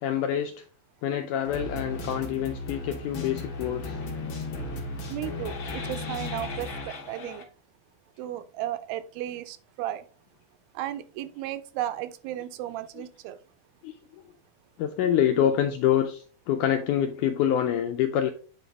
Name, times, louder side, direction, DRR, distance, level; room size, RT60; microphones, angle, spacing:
voice 1, 0.0-0.7 1.0-4.0 13.8-13.9 14.8-18.3, left 10 dB, 85° left, 6 dB, 1.8 m, -26 dB
sound 1, 1.4-7.4, left 2 dB, 60° left, 1.3 m, -35 dB
voice 2, 5.1-7.4 8.2-10.1 10.8-13.4, right 13 dB, 85° right, 11 dB, 2.4 m, -34 dB
9.0 x 4.1 x 3.4 m, 0.40 s
omnidirectional pair, 4.2 m